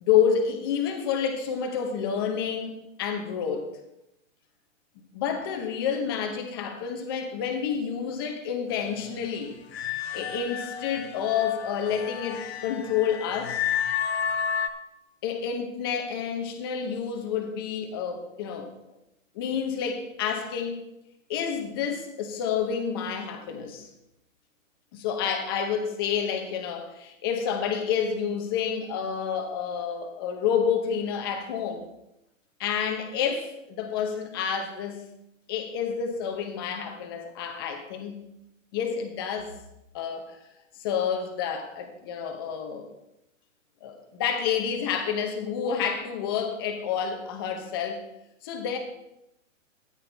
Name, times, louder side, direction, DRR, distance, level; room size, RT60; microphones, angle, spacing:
voice 1, 0.0-2.7 3.0-3.7 5.1-9.6 9.9-13.7 15.2-18.7 19.3-20.8 21.3-23.9 24.9-31.8 32.6-35.0 35.5-38.2 38.7-39.6 39.9-40.4 40.8-42.9 43.8-48.0 48.4-48.8, left 7 dB, 20° left, 5 dB, 0.8 m, -29 dB
sound 1, 9.7-14.7, left 8 dB, 50° left, 0.9 m, -31 dB
13.0 x 9.9 x 3.4 m, 0.86 s
hypercardioid pair, 170°, 39 cm